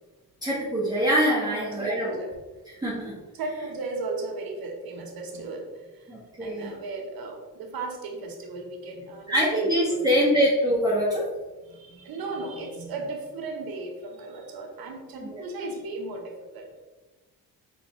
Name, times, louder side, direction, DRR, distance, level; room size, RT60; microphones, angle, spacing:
voice 1, 0.4-2.2 2.8-3.2 6.1-6.7 9.3-11.3 15.2-15.4, equal, 10° right, -8 dB, 1.3 m, -24 dB
voice 2, 1.5-2.3 3.3-6.1 6.4-10.2 11.6-16.7, right 3 dB, 65° right, 2 dB, 1.0 m, -36 dB
4.3 x 3.7 x 3.0 m, 1.2 s
cardioid pair, 75°, 38 cm